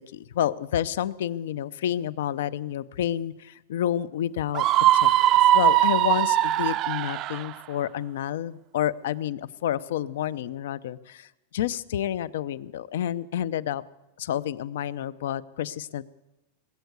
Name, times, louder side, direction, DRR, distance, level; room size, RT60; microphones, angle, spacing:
voice 1, 0.1-4.7 4.9-5.1 5.5-13.8 14.2-16.0, left 11 dB, 70° left, 18 dB, 0.6 m, -29 dB
Screaming, 4.5-7.5, right 13 dB, 30° right, 0.4 m, -20 dB
20.0 x 8.2 x 8.1 m, 1.0 s
supercardioid pair, 165°, 0 cm